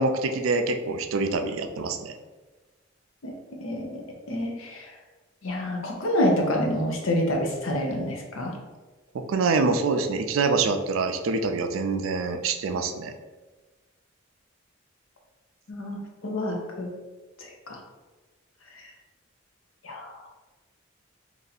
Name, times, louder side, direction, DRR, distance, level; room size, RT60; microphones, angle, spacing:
voice 1, 0.0-2.1 9.1-13.1, right 3 dB, 80° right, 7 dB, 0.4 m, -25 dB
voice 2, 3.6-4.0 4.3-4.9 5.4-8.6 15.7-16.9 17.4-17.8 18.7-18.8 19.8-20.1, left 1 dB, 85° left, 1 dB, 0.8 m, -28 dB
3.0 x 2.7 x 4.0 m, 1.2 s
head